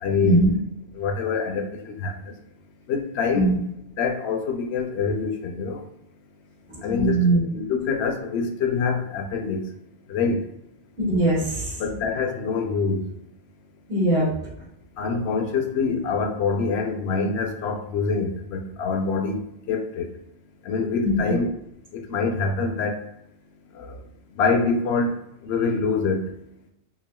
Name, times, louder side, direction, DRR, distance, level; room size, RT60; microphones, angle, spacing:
voice 1, 0.0-0.5 0.9-2.3 2.9-3.5 4.0-5.8 6.8-9.6 10.1-10.4 11.8-13.0 15.0-19.4 19.7-20.1 20.6-21.5 21.9-23.0 23.7-24.0 24.3-26.2, left 4 dB, 75° left, 5 dB, 0.8 m, -25 dB
voice 2, 6.7-7.4 11.0-11.8 13.9-14.3 21.0-21.3, right 2 dB, 55° right, -12 dB, 1.9 m, -21 dB
5.7 x 2.3 x 2.2 m, 0.83 s
omnidirectional pair, 1.1 m